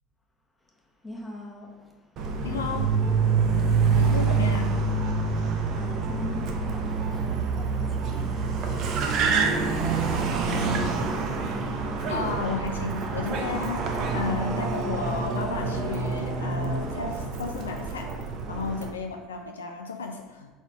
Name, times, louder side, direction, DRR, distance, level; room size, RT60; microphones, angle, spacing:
voice 1, 1.0-1.9 3.5-4.0 5.2-12.1, left 2 dB, 10° left, -1 dB, 1.4 m, -44 dB
Car, 2.2-18.9, right 4 dB, 50° right, 0.7 m, -26 dB
voice 2, 2.4-2.9 4.0-4.8 12.1-18.1 18.5-20.5, left 4 dB, 80° left, 4 dB, 0.4 m, -33 dB
4.9 x 4.0 x 5.2 m, 1.2 s
figure-of-eight pair, 70°, 0 cm